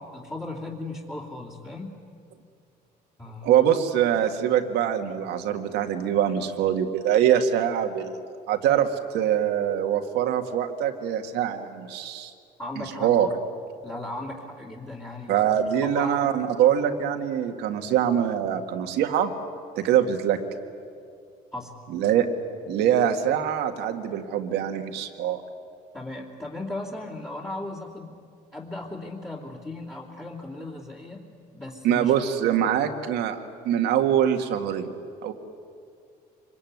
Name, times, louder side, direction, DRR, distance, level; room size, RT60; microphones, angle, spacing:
voice 1, 0.1-1.9 3.2-3.5 12.6-13.4 13.8-15.4 15.8-16.3 21.5-21.7 25.9-28.2 28.5-31.2 31.5-32.1, left 2 dB, 15° left, -5 dB, 2.8 m, -36 dB
voice 2, 3.4-8.2 8.5-12.3 12.8-13.3 15.3-19.3 19.8-20.4 21.9-22.3 22.7-25.4 31.8-33.4 33.6-34.9 35.2-35.3, right 10 dB, 85° right, 5 dB, 2.0 m, -23 dB
25.0 x 22.0 x 9.5 m, 2.4 s
cardioid pair, 110°, 17 cm